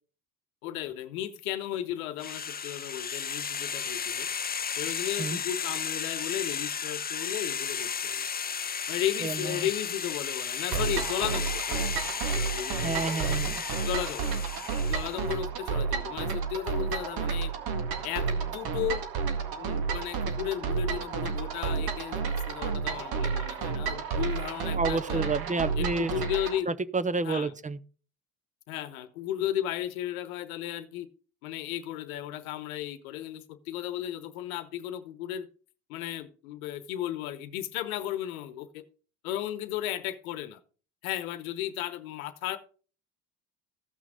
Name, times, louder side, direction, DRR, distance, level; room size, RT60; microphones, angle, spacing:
voice 1, 0.6-4.3 4.8-8.3 8.9-11.9 12.3-13.3 13.9-14.3 14.9-17.5 18.0-19.0 19.6-25.3 25.8-26.7 27.2-27.5 28.7-31.1 31.4-35.5 35.9-38.8 39.2-40.6 41.0-42.6, left 12 dB, 85° left, 1.0 m, -35 dB
sound 1, 2.2-15.3, left 6 dB, 20° left, 0.7 m, -34 dB
voice 2, 9.2-9.7 12.8-13.6 24.7-26.1 26.7-27.8, right 3 dB, 20° right, 0.7 m, -30 dB
sound 2, 10.7-26.6, right 5 dB, 60° right, 2.0 m, -31 dB
15.0 x 6.1 x 3.9 m
hypercardioid pair, 65°, 42 cm